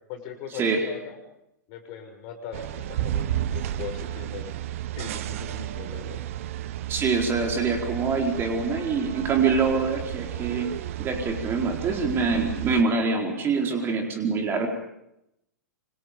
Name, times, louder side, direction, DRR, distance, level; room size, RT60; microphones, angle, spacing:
voice 1, 0.1-1.2 1.7-4.6 5.0-6.2, left 6 dB, 40° left, 6 dB, 6.5 m, -39 dB
sound 1, 2.5-12.8, right 12 dB, 50° right, 1.3 m, -32 dB
voice 2, 6.9-14.7, right 4 dB, 25° right, 3 dB, 4.4 m, -25 dB
28.5 x 25.5 x 5.3 m, 0.82 s
figure-of-eight pair, 100°, 9 cm